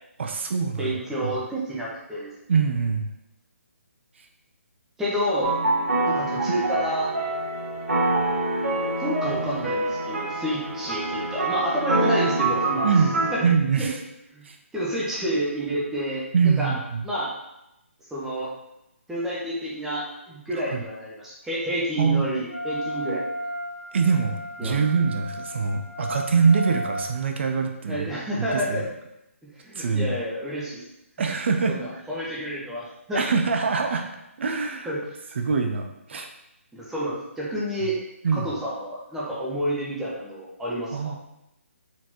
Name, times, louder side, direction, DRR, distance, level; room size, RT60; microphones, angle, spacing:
voice 1, 0.2-0.9 1.2-1.3 2.5-3.1 6.5-6.6 12.8-14.0 14.4-14.6 16.3-17.1 20.7-20.8 22.0-22.3 23.9-28.1 28.5-28.9 29.8-30.2 31.2-31.8 33.1-34.1 34.4-34.9 35.4-36.3 38.2-38.5 40.9-41.2, right 5 dB, 55° right, 4 dB, 0.5 m, -24 dB
voice 2, 0.8-2.3 5.0-5.6 6.1-7.1 9.0-12.9 13.3-13.5 13.8-13.9 14.3-14.4 14.7-16.2 16.6-16.7 17.0-17.3 18.1-18.5 19.1-23.2 24.6-24.9 27.9-28.9 29.6-30.8 31.7-33.2 34.8-35.0 36.7-38.0 38.3-41.2, equal, 5° right, -7 dB, 1.0 m, -29 dB
sound 1, 5.4-13.3, right 2 dB, 75° right, 1.4 m, -26 dB
Wind instrument woodwind instrument, 22.5-27.1, equal, 65° left, 0.9 m, -34 dB
4.4 x 3.8 x 2.9 m, 0.88 s
figure-of-eight pair, 145°, 8 cm